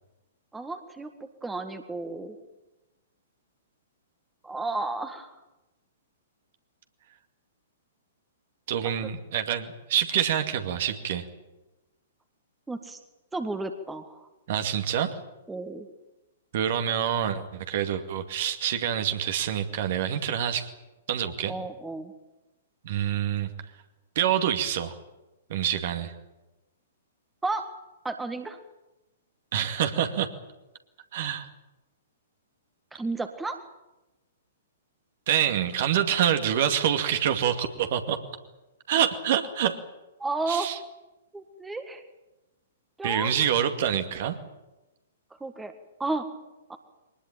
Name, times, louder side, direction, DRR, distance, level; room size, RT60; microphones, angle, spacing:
voice 1, 0.5-1.1 1.4-2.4 4.4-5.3 8.8-8.9 12.7-13.0 13.3-14.2 15.5-15.9 21.5-22.1 27.4-27.7 28.0-28.6 32.9-33.6 40.2-40.7 41.3-42.0 43.0-43.3 45.4-45.7 46.0-46.3 46.7-46.8, right 3 dB, 10° right, 7 dB, 1.8 m, -32 dB
voice 2, 8.7-11.3 14.5-15.1 16.5-20.7 21.1-21.5 22.8-23.5 24.2-24.9 25.5-26.1 29.5-30.3 31.1-31.5 35.3-38.2 38.9-39.8 40.5-40.8 43.0-44.4, right 9 dB, 50° right, 7 dB, 2.3 m, -26 dB
23.0 x 20.0 x 9.0 m, 1.0 s
figure-of-eight pair, 110°, 0 cm